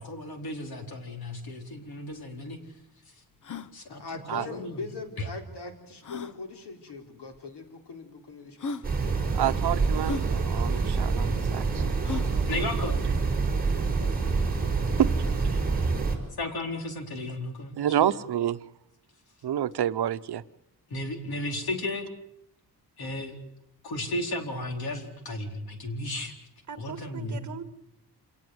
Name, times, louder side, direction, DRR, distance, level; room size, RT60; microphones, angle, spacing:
voice 1, 0.0-2.6 3.7-4.0 4.3-4.8 12.5-13.0 14.0-14.4 16.4-18.1 20.9-22.1 23.0-23.4 23.8-26.4 26.8-27.5, left 1 dB, 65° left, 4.3 m, -34 dB
sound 1, 1.8-1.9 2.1-2.2 2.7-2.8 3.3-3.7 5.0-5.1 6.0-6.4 7.3-7.4 8.2-8.3 8.6-8.9 10.0-10.3 12.0-12.4, left 4 dB, 50° left, 1.0 m, -35 dB
voice 2, 3.9-8.9 15.0-15.8, left 3 dB, 90° left, 4.4 m, -41 dB
sound 2, 8.8-16.2, right 4 dB, 25° right, 5.2 m, -26 dB
voice 3, 9.3-11.9 15.0-15.1 17.8-18.6 19.4-20.4, right 10 dB, 80° right, 1.0 m, -28 dB
voice 4, 12.1-12.7 26.7-27.6, right 6 dB, 45° right, 2.2 m, -41 dB
27.5 x 19.0 x 8.0 m
wide cardioid pair, 170°, 39 cm